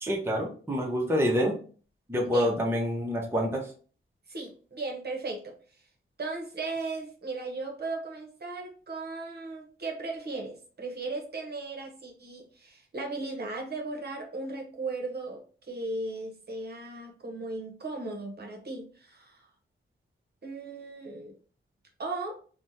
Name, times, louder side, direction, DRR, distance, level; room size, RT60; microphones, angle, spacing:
voice 1, 0.0-1.5 2.1-3.6, equal, 10° right, -1 dB, 0.7 m, -27 dB
voice 2, 4.3-5.5 6.2-19.4 20.4-21.3 22.0-22.3, right 3 dB, 50° right, 1 dB, 0.8 m, -36 dB
3.3 x 2.1 x 2.7 m, 0.41 s
wide cardioid pair, 95°, 21 cm